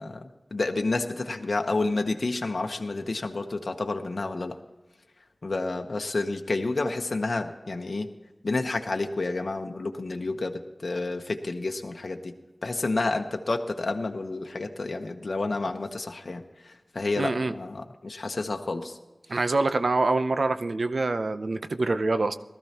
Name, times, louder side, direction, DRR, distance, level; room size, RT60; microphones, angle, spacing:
voice 1, 0.0-4.6 5.4-8.1 8.4-12.3 12.6-19.0, left 3 dB, 70° left, 4 dB, 0.9 m, -30 dB
voice 2, 17.2-17.5 19.3-22.3, right 3 dB, 75° right, 11 dB, 0.6 m, -25 dB
19.0 x 13.5 x 2.9 m, 1.1 s
wide cardioid pair, 50°, 0 cm